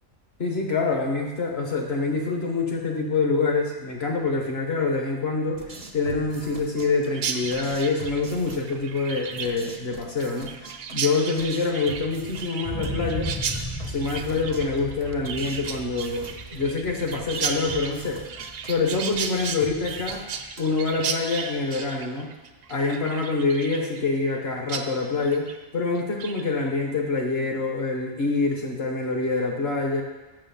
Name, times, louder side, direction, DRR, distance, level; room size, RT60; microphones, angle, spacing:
voice 1, 0.4-5.7 5.9-10.5 10.9-13.3 13.9-18.2 18.6-20.3 20.6-22.3 22.7-30.0, left 3 dB, 50° left, 2 dB, 1.4 m, -26 dB
sound 1, 5.5-21.0, right 3 dB, 40° right, 0.6 m, -44 dB
Chirp tweet, 7.1-24.4 24.7-24.9 25.2-25.6 26.0-26.4, right 6 dB, 70° right, 0.9 m, -34 dB
sound 2, 12.6-20.5 20.9-21.0, equal, 5° left, 0.6 m, -37 dB
6.3 x 5.7 x 7.1 m, 1.2 s
omnidirectional pair, 1.4 m